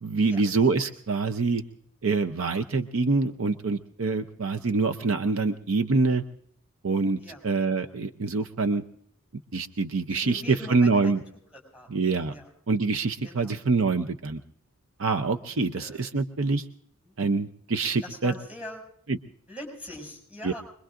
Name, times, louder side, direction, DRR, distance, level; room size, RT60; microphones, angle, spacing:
voice 1, 0.0-1.6 2.0-6.2 6.8-7.2 7.4-8.8 9.5-11.2 11.9-12.3 12.7-14.4 15.0-16.7 17.2-18.3 19.1-19.2 20.4-20.5, right 4 dB, 60° right, 7 dB, 0.6 m, -25 dB
voice 2, 10.1-11.2 11.5-11.9 12.3-12.5 13.2-13.5 15.7-16.0 17.1-17.2 18.0-18.8 19.5-20.6, left 1 dB, 5° right, 1 dB, 6.4 m, -42 dB
25.5 x 22.0 x 2.5 m, 0.66 s
head